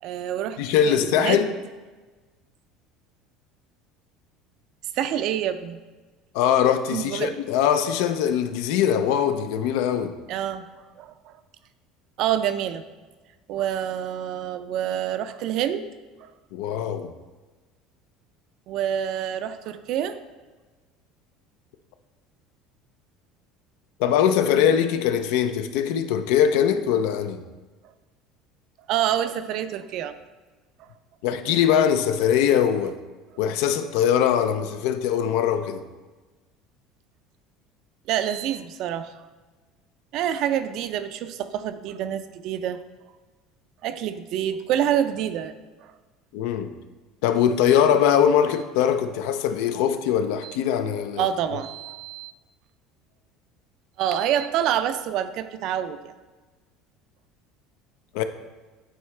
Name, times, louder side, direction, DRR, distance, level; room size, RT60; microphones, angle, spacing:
voice 1, 0.0-0.6 0.9-1.5 4.9-5.8 6.9-7.3 10.3-10.7 11.0-11.4 12.2-12.8 13.5-15.9 16.2-16.3 18.7-20.2 27.8-27.9 28.9-30.1 30.8-30.9 38.1-39.1 40.1-42.8 43.8-45.6 45.8-45.9 50.4-50.6 51.2-52.3 54.0-56.1, right 10 dB, 60° right, 11 dB, 0.4 m, -27 dB
voice 2, 0.6-1.5 6.3-10.1 16.5-17.1 24.0-27.4 31.2-32.9 33.4-35.8 46.3-46.7 47.2-51.3 58.1-58.2, left 9 dB, 75° left, 9 dB, 0.4 m, -22 dB
8.8 x 3.7 x 3.2 m, 1.3 s
supercardioid pair, 110°, 0 cm